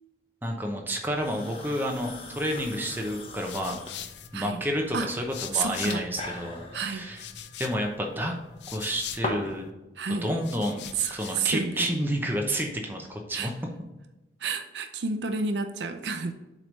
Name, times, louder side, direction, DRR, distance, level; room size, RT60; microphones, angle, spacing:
voice 1, 0.4-3.8 4.3-7.2 7.6-8.3 8.7-9.7 10.2-13.5, equal, 10° right, 1 dB, 0.8 m, -30 dB
sound 1, 1.1-9.7, left 2 dB, 30° left, 0.9 m, -41 dB
sound 2, 3.1-6.2 6.6-9.7 10.2-11.5, left 10 dB, 75° left, 0.5 m, -43 dB
voice 2, 5.5-6.0 6.7-7.1 10.0-10.3 10.9-11.9 13.3-13.5 14.4-16.3, right 5 dB, 75° right, 7 dB, 0.5 m, -30 dB
7.7 x 3.2 x 5.2 m, 1.0 s
head